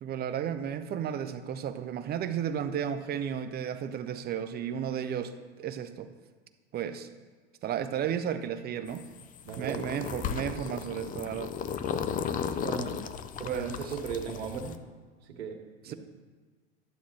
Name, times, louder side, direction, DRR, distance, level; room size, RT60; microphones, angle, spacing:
voice 1, 0.0-5.3 5.6-6.1 6.7-7.1 7.6-9.0 9.6-11.5 13.4-13.9 15.8-15.9, right 9 dB, 30° right, 10 dB, 0.8 m, -33 dB
sound 1, 8.9-14.8, left 7 dB, 25° left, 0.5 m, -35 dB
voice 2, 9.4-10.0 12.6-12.9 13.4-14.8 15.4-15.5 15.9-16.0, right 6 dB, 80° right, 4 dB, 1.7 m, -36 dB
12.0 x 7.5 x 4.3 m, 1.4 s
hypercardioid pair, 105°, 31 cm